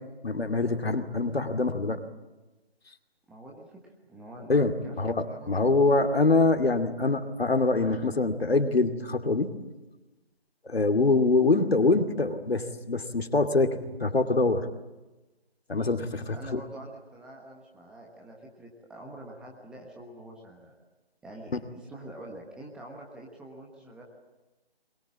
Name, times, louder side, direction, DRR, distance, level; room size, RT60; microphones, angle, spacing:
voice 1, 0.2-2.0 4.5-4.7 5.0-9.5 10.6-14.7 15.7-16.6, left 3 dB, 75° left, 7 dB, 2.5 m, -24 dB
voice 2, 3.3-5.0 5.3-5.5 5.9-6.0 16.3-20.7 21.2-24.0, right 1 dB, 5° right, -2 dB, 1.2 m, -46 dB
22.0 x 21.5 x 8.6 m, 1.1 s
figure-of-eight pair, 155°, 31 cm